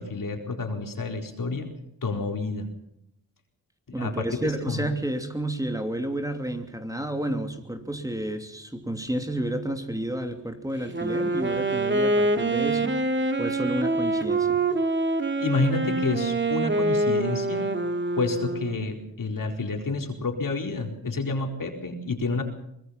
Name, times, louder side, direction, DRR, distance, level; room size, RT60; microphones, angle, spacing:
voice 1, 0.0-1.7 2.0-2.7 3.9-4.9 15.4-17.7 18.1-22.4, left 3 dB, 65° left, 4 dB, 4.4 m, -29 dB
voice 2, 3.9-12.9 13.4-14.6, right 1 dB, 10° right, 6 dB, 2.8 m, -31 dB
Wind instrument woodwind instrument, 10.8-18.9, right 2 dB, 30° right, 2.3 m, -25 dB
24.5 x 20.0 x 5.8 m, 0.79 s
cardioid pair, 75°, 36 cm